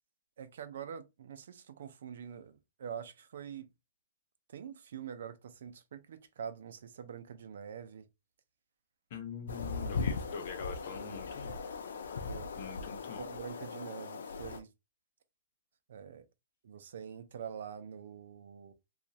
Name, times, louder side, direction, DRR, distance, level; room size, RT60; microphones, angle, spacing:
voice 1, 0.4-3.7 4.5-8.1 9.9-10.0 12.3-12.5 13.2-14.7 15.9-16.3 16.6-18.7, right 8 dB, 70° right, 0.5 m, -45 dB
voice 2, 9.1-11.6 12.6-13.3, left 6 dB, 45° left, 0.9 m, -43 dB
sound 1, 9.5-14.6, left 4 dB, 85° left, 0.5 m, -39 dB
2.9 x 2.4 x 2.7 m
hypercardioid pair, 165°, 0 cm